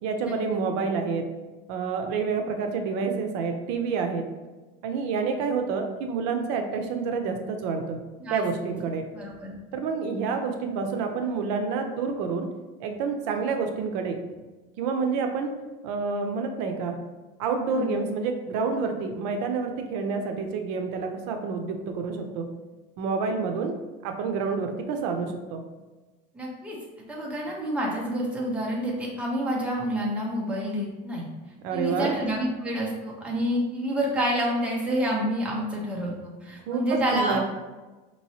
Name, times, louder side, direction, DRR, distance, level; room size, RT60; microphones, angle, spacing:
voice 1, 0.0-1.3 1.7-4.2 4.8-8.0 8.3-9.0 9.7-12.5 12.8-14.2 14.8-15.5 15.8-17.0 17.4-22.5 23.0-23.7 24.0-25.7 31.6-32.1 36.7-37.4, right 5 dB, 80° right, 5 dB, 0.6 m, -28 dB
voice 2, 9.1-9.6 17.7-17.9 26.3-26.8 27.1-31.3 31.7-37.4, equal, 5° right, -3 dB, 0.6 m, -28 dB
4.5 x 3.0 x 2.7 m, 1.2 s
cardioid pair, 170°, 21 cm